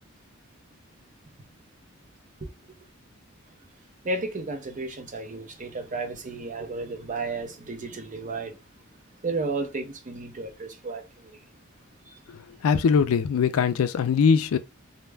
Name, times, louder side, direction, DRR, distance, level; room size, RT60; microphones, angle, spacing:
voice 1, 4.0-8.5 9.2-11.0 12.1-12.2, right 3 dB, 40° right, 0.6 m, -33 dB
voice 2, 12.6-14.6, left 6 dB, 85° left, 0.4 m, -21 dB
2.3 x 2.1 x 3.2 m
head